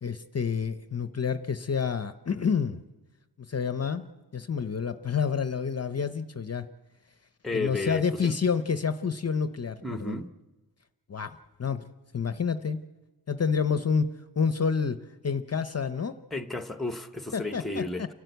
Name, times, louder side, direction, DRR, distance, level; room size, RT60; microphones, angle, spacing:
voice 1, 0.0-2.8 3.5-4.0 4.3-6.7 7.5-10.2 11.1-11.8 12.1-12.8 13.3-15.0 15.2-16.2 17.3-18.1, left 6 dB, 40° left, 10 dB, 0.6 m, -28 dB
voice 2, 7.4-8.4 9.8-10.3 16.3-18.0, left 2 dB, ahead, 8 dB, 0.8 m, -32 dB
29.5 x 12.5 x 8.0 m, 1.2 s
wide cardioid pair, 170°, 41 cm